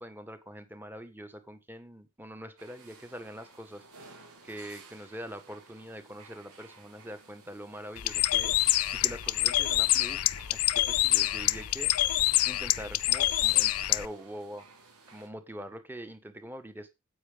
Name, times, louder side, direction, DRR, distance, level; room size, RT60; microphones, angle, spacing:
voice 1, 0.0-10.2 10.5-11.9 12.4-14.7 15.1-16.9, equal, 10° right, 1.6 m, -44 dB
sound 1, 2.6-15.3, right 4 dB, 80° right, 5.2 m, -55 dB
Bird, 8.0-14.1, left 15 dB, 85° left, 0.6 m, -26 dB
9.5 x 8.8 x 5.3 m
head